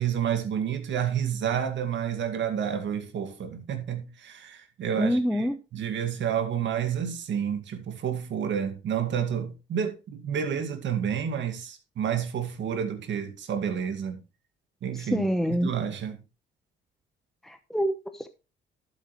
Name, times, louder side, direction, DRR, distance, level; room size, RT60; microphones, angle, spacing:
voice 1, 0.0-5.2 5.7-14.2 14.8-15.3 15.6-16.2, right 8 dB, 70° right, 2.1 m, -29 dB
voice 2, 5.0-5.6 14.9-15.7 17.4-18.3, equal, ahead, 0.9 m, -26 dB
12.0 x 7.7 x 3.2 m
cardioid pair, 90°, 20 cm